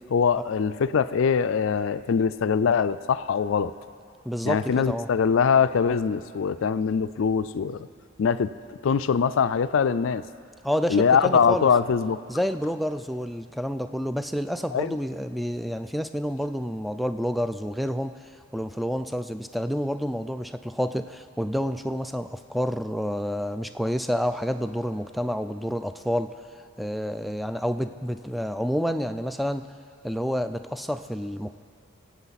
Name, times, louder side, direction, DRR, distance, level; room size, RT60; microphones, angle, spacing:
voice 1, 0.1-3.7 4.4-7.9 8.2-8.5 8.8-10.2 10.9-12.2 14.7-15.0, left 6 dB, 70° left, 14 dB, 0.4 m, -22 dB
voice 2, 4.3-5.1 10.6-11.7 12.3-18.1 18.5-26.3 26.8-29.7 30.0-31.5, equal, ahead, 9 dB, 0.3 m, -29 dB
23.5 x 8.3 x 4.1 m, 2.4 s
head